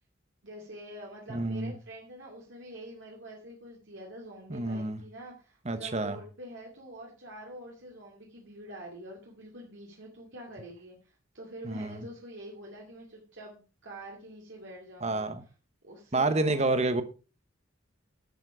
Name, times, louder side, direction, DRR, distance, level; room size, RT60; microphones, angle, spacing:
voice 1, 0.4-15.3 15.8-17.0, right 1 dB, 60° right, 2.5 m, -46 dB
voice 2, 1.3-1.7 4.5-5.0 5.6-6.2 11.6-12.1 15.0-15.4 16.1-17.0, right 2 dB, 30° right, 1.0 m, -29 dB
12.0 x 7.3 x 4.9 m
head